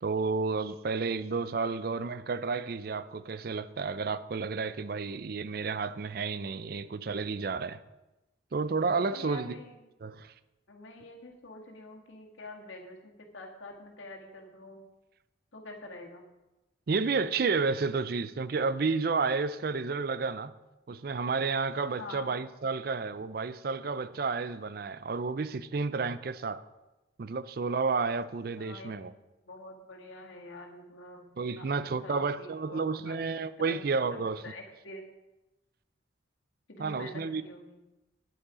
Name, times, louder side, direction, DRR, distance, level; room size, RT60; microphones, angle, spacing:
voice 1, 0.0-7.8 8.5-9.6 10.0-10.3 16.9-20.5 20.9-26.6 27.2-29.1 31.4-34.4 36.8-37.4, right 4 dB, 50° right, 0.4 m, -31 dB
voice 2, 9.1-9.8 10.7-14.8 15.5-16.2 22.0-22.3 28.6-29.2 29.5-31.7 32.0-33.8 34.1-35.1 36.7-37.8, left 2 dB, 90° left, 1.9 m, -46 dB
9.9 x 8.6 x 5.0 m
head